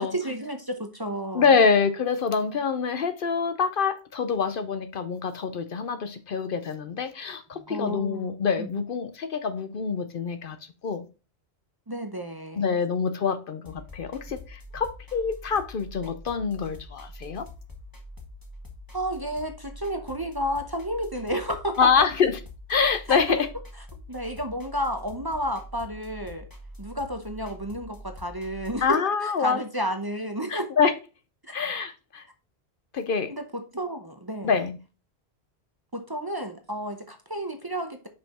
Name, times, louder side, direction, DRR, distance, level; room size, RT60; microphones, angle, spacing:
voice 1, 0.0-1.5 7.5-8.7 11.9-12.8 18.9-21.9 23.1-23.4 23.9-26.5 26.8-30.7 31.4-31.5 33.3-34.6 35.9-38.1, equal, 25° right, 0.7 m, -32 dB
voice 2, 1.3-10.6 10.8-11.1 12.6-17.5 21.8-22.3 22.7-23.5 28.8-29.6 30.5-30.9 31.5-32.2 32.9-33.3 34.4-34.8, left 5 dB, 60° left, 0.8 m, -25 dB
sound 1, 13.7-28.9, left 1 dB, 20° left, 1.2 m, -44 dB
5.6 x 5.3 x 4.1 m
omnidirectional pair, 1.1 m